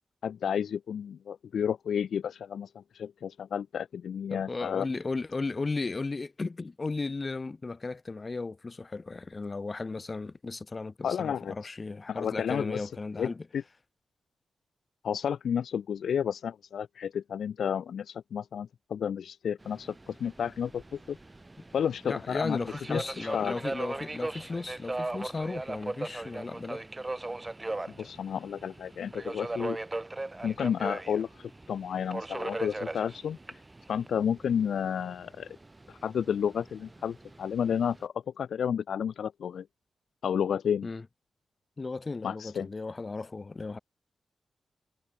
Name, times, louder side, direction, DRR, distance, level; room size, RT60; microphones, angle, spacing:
voice 1, 0.2-4.9 11.0-11.5 12.1-12.9 13.2-13.6 15.0-21.2 21.7-22.6 22.9-23.5 28.0-29.8 30.4-33.6 33.9-35.6 35.9-39.7 40.2-40.9 42.2-42.7, left 8 dB, 80° left, 0.5 m, -31 dB
voice 2, 4.3-13.5 22.0-26.8 40.8-41.0 41.8-43.8, left 3 dB, 25° left, 1.6 m, -35 dB
Subway metro underground, 19.6-38.0, right 2 dB, 15° right, 0.7 m, -39 dB
wide cardioid pair, 175°, 0 cm